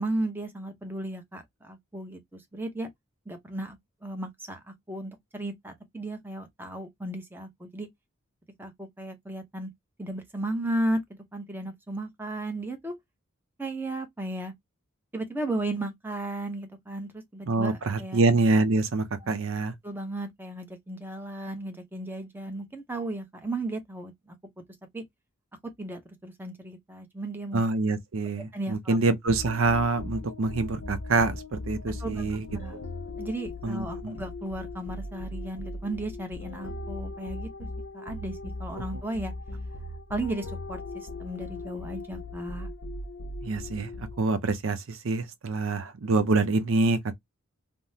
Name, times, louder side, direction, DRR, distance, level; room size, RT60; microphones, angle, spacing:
voice 1, 0.0-2.9 3.3-3.8 4.0-7.9 8.6-9.7 10.0-13.0 13.6-14.5 15.1-18.2 19.8-24.4 24.9-25.0 25.8-27.6 28.5-29.0 32.0-32.8 33.2-37.5 37.9-39.3 40.1-42.7, right 1 dB, 10° right, 0.6 m, -35 dB
voice 2, 17.5-19.7 27.5-32.5 33.6-34.2 43.4-47.1, right 3 dB, 70° right, 0.5 m, -26 dB
sound 1, 29.3-44.4, left 2 dB, 60° left, 0.6 m, -38 dB
3.5 x 2.0 x 2.6 m
head